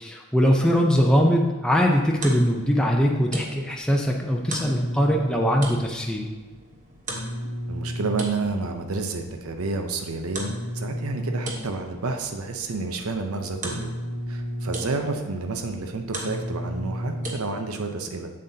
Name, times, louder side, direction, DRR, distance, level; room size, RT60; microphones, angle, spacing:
voice 1, 0.0-6.3, equal, 5° left, -1 dB, 0.5 m, -21 dB
sound 1, 2.1-17.3, equal, 35° right, 1.1 m, -34 dB
voice 2, 7.7-13.9 14.3-18.3, right 3 dB, 85° right, 5 dB, 0.7 m, -30 dB
7.7 x 7.3 x 2.8 m, 1.2 s
head